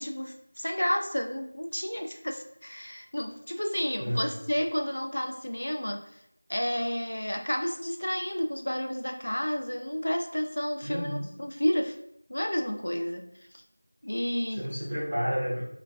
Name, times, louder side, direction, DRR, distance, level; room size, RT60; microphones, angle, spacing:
voice 1, 0.0-6.1 6.5-12.0 12.3-13.3 13.5-13.6 14.0-14.7, equal, 50° left, 4 dB, 0.3 m, -31 dB
voice 2, 4.0-4.3 10.8-11.3 14.5-15.6, equal, 10° right, -12 dB, 0.6 m, -31 dB
4.9 x 2.2 x 2.3 m, 0.73 s
figure-of-eight pair, 180°, 0 cm